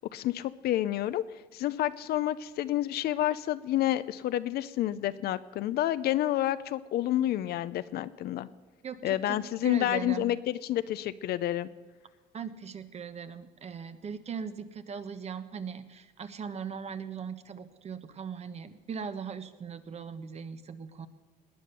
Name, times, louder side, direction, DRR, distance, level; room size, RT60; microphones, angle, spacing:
voice 1, 0.1-1.2 1.5-8.5 9.0-11.7, left 13 dB, 70° left, 13 dB, 0.6 m, -29 dB
voice 2, 8.8-9.4 9.6-10.4 12.3-21.1, right 6 dB, 40° right, 11 dB, 1.2 m, -39 dB
19.0 x 9.7 x 6.8 m, 1.4 s
cardioid pair, 110°, 17 cm